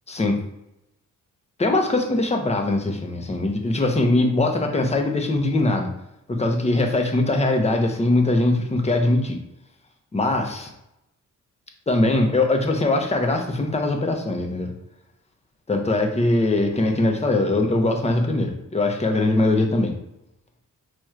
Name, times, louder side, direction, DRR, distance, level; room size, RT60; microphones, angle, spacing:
voice 1, 0.1-0.4 1.6-5.9 6.3-9.4 10.1-10.7 11.9-14.7 15.7-19.9, left 2 dB, 20° left, 3 dB, 0.9 m, -21 dB
6.1 x 3.0 x 2.4 m, 0.86 s
cardioid pair, 65°, 34 cm